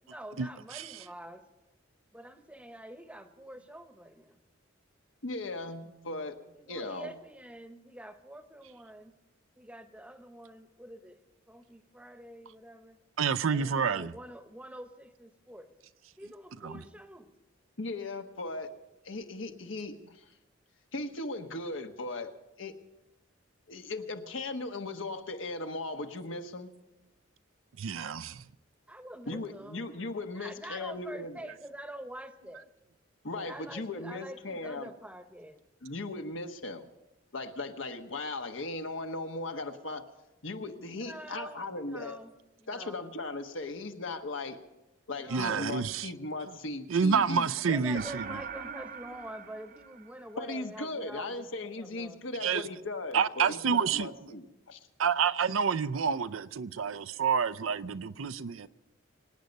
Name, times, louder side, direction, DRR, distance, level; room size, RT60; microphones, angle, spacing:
voice 1, 0.0-1.4 2.1-4.4 6.5-9.1 9.6-11.2 11.5-13.0 13.5-15.7 16.2-17.3 28.9-29.8 30.3-32.6 33.3-35.6 40.9-42.3 42.6-43.0 45.2-46.0 47.5-52.5, right 1 dB, 5° right, 0.9 m, -46 dB
voice 2, 5.2-6.4 6.7-7.1 16.7-16.8 17.8-18.7 19.0-20.3 20.9-22.3 22.6-22.7 23.7-26.7 29.3-31.4 33.2-34.9 35.8-36.8 37.3-40.0 40.4-42.2 42.7-44.6 45.1-47.5 50.4-54.8, left 2 dB, 75° left, 1.3 m, -37 dB
voice 3, 13.2-14.1 16.6-16.7 27.8-28.4 45.3-46.1 46.9-48.2 52.4-52.6 53.1-54.1 55.0-58.7, right 6 dB, 90° right, 0.5 m, -28 dB
sound 1, 48.0-50.6, right 6 dB, 45° right, 0.7 m, -42 dB
25.5 x 9.2 x 5.3 m
head